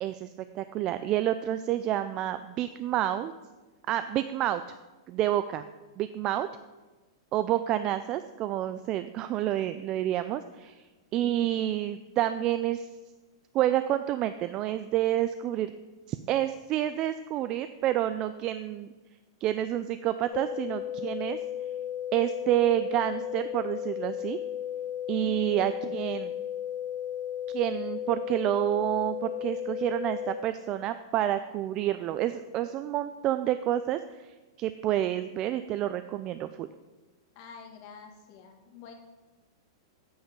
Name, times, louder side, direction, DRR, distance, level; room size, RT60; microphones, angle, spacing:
voice 1, 0.0-3.3 3.9-4.6 5.1-5.7 6.0-6.5 7.3-12.9 13.5-15.7 16.1-18.9 19.4-21.4 22.1-24.4 25.1-26.3 27.5-36.7, right 12 dB, 30° right, 11 dB, 0.3 m, -29 dB
sound 1, 20.3-30.3, left 10 dB, 75° left, 1.9 m, -35 dB
voice 2, 37.3-38.9, left 6 dB, 45° left, 4 dB, 1.6 m, -48 dB
8.7 x 5.6 x 6.8 m, 1.2 s
supercardioid pair, 155°, 2 cm